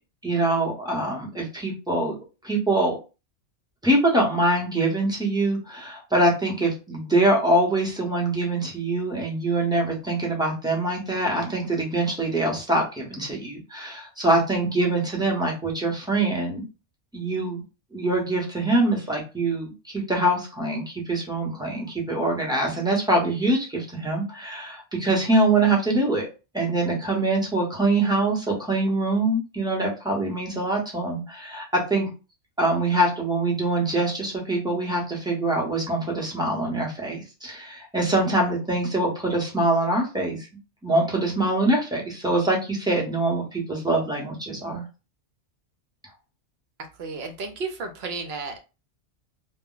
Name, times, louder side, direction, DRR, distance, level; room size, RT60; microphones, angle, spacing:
voice 1, 0.2-2.2 2.4-3.0 3.8-16.7 17.1-17.6 17.9-26.3 26.5-32.1 32.6-40.5 40.8-44.8, right 2 dB, 5° right, -2 dB, 0.7 m, -24 dB
voice 2, 46.8-48.6, right 4 dB, 70° right, 4 dB, 0.8 m, -33 dB
2.1 x 2.1 x 3.8 m, 0.31 s
omnidirectional pair, 1.2 m